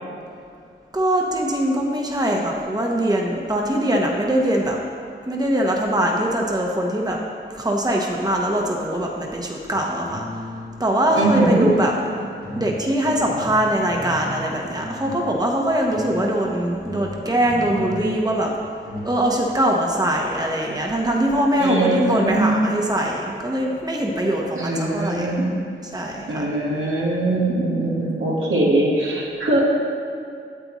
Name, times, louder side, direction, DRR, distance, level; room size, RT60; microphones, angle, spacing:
voice 1, 0.9-4.8 5.3-7.2 7.5-10.2 10.8-11.9 12.6-18.5 19.0-25.4 25.9-26.5, right 1 dB, 20° right, -1 dB, 1.1 m, -22 dB
sound 1, 9.7-10.8 11.2-12.0 12.4-15.4 15.7-19.1, left 1 dB, 90° right, 2.1 m, -34 dB
voice 2, 11.1-11.7 21.6-22.6 24.5-25.5 26.3-29.6, right 2 dB, 75° right, -5 dB, 1.4 m, -21 dB
9.3 x 7.8 x 3.1 m, 2.4 s
cardioid pair, 50°, 21 cm